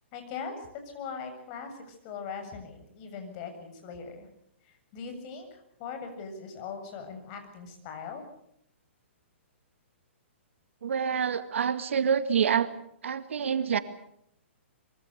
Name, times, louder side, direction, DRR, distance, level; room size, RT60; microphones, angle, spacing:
voice 1, 0.1-0.6 0.9-4.3 4.6-8.2, left 6 dB, 40° left, 6 dB, 7.5 m, -40 dB
voice 2, 10.8-12.7 13.0-13.8, right 7 dB, 75° right, 10 dB, 2.1 m, -27 dB
25.0 x 24.0 x 6.7 m, 0.75 s
hypercardioid pair, 135°, 7 cm